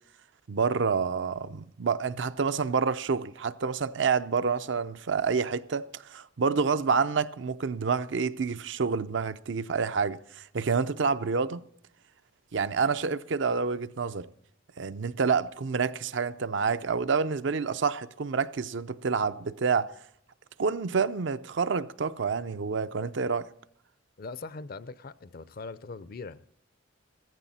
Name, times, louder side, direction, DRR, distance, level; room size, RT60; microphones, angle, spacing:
voice 1, 0.5-11.6 12.5-14.3 14.8-19.9 20.6-23.5, right 5 dB, 65° right, 0.5 m, -28 dB
voice 2, 24.2-26.5, left 3 dB, 50° left, 0.5 m, -41 dB
15.0 x 14.5 x 4.2 m
head